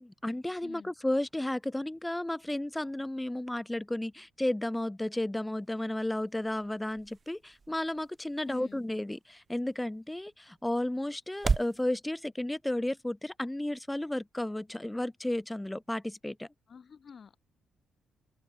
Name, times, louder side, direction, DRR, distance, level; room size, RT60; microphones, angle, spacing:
voice 1, 0.0-16.5, left 1 dB, 10° left, 0.7 m, -33 dB
voice 2, 0.6-0.9 8.4-8.9 16.7-17.4, left 6 dB, 45° left, 5.1 m, -49 dB
sound 1, 5.5-11.8, right 4 dB, 35° right, 3.6 m, -38 dB
open air
cardioid pair, 90°, 0 cm